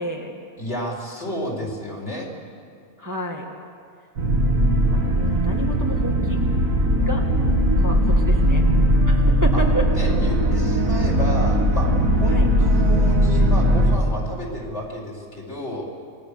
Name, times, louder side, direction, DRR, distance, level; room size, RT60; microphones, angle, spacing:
voice 1, 0.0-0.4 3.0-3.5 4.9-6.4 7.0-7.2 7.8-8.6 9.0-10.1 12.3-12.5, right 1 dB, 15° right, 0 dB, 1.8 m, -30 dB
voice 2, 0.6-2.3 9.5-15.9, equal, 55° left, -2 dB, 4.9 m, -31 dB
sound 1, 4.2-14.0, equal, 80° right, 2.7 m, -19 dB
26.0 x 20.0 x 6.9 m, 2.3 s
omnidirectional pair, 1.4 m